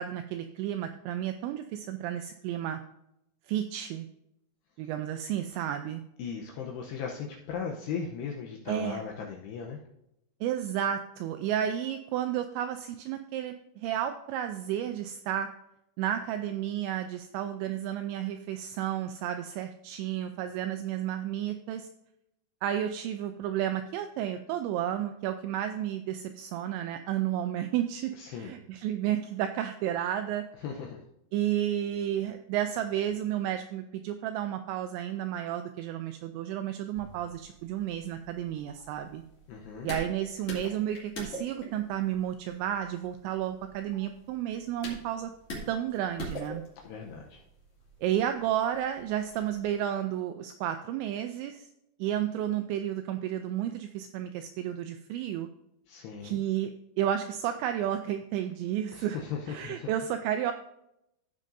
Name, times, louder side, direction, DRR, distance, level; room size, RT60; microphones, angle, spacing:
voice 1, 0.0-2.8 3.5-4.1 4.8-6.0 8.7-9.0 10.4-15.5 16.0-21.9 22.6-30.4 31.3-39.2 39.8-45.3 45.7-46.6 48.0-51.7 52.0-55.5 56.2-56.7 57.0-59.2 59.5-60.5, right 11 dB, 85° right, 7 dB, 2.6 m, -32 dB
voice 2, 6.2-9.8 28.2-28.5 30.6-31.0 39.5-39.9 46.8-47.4 55.9-56.4 58.9-59.9, left 6 dB, 80° left, 1 dB, 2.4 m, -37 dB
sound 1, 36.9-49.7, equal, 40° left, 2.5 m, -45 dB
15.0 x 6.3 x 2.6 m, 0.83 s
omnidirectional pair, 5.6 m